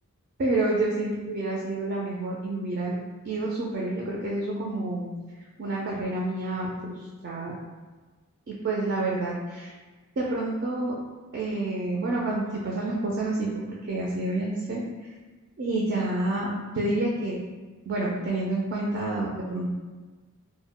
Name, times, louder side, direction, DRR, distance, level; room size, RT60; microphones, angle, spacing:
voice 1, 0.4-2.9 3.2-5.1 5.6-7.0 7.2-7.6 8.5-9.7 10.2-10.9 11.3-13.5 13.9-14.8 15.6-17.4 17.9-19.8, right 2 dB, 50° right, -3 dB, 0.4 m, -28 dB
2.1 x 2.0 x 3.6 m, 1.3 s
head